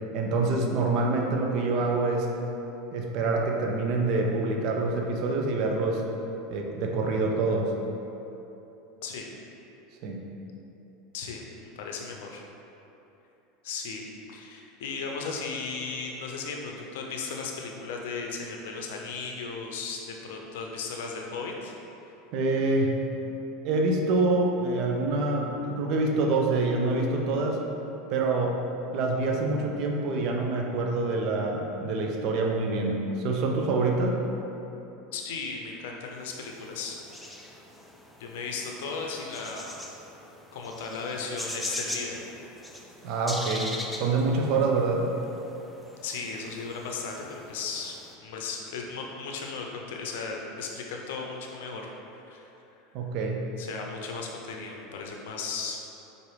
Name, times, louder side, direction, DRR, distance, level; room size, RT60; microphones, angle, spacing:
voice 1, 0.1-2.3 2.9-6.0 6.5-7.7 10.0-10.2 22.3-23.0 23.6-27.6 28.1-28.6 28.9-34.2 43.0-43.7 44.0-45.1 52.9-53.5, right 3 dB, 55° right, 1 dB, 0.5 m, -26 dB
voice 2, 11.8-12.4 13.6-14.0 14.3-21.7 35.1-37.4 38.2-39.8 40.5-42.2 46.0-51.9 52.3-52.5 53.6-55.8, left 4 dB, 75° left, 0 dB, 0.5 m, -36 dB
sound 1, 36.3-48.1, left 1 dB, 5° left, 0.4 m, -41 dB
4.5 x 2.6 x 3.2 m, 3.0 s
hypercardioid pair, 95°, 0 cm